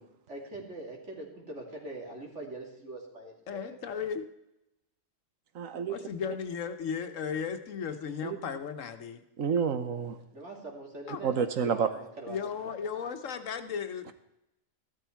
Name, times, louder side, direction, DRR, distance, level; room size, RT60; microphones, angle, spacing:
voice 1, 0.3-4.0 10.3-12.4 12.6-12.8, right 2 dB, 60° right, 0 dB, 3.2 m, -43 dB
voice 2, 3.5-4.2 5.9-9.2 11.1-11.2 12.3-14.1, left 6 dB, 75° left, 8 dB, 1.4 m, -35 dB
voice 3, 5.5-6.0 8.2-8.4 9.4-10.2 11.2-11.9, right 6 dB, 80° right, 10 dB, 1.4 m, -29 dB
15.0 x 12.5 x 4.6 m, 0.88 s
omnidirectional pair, 1.4 m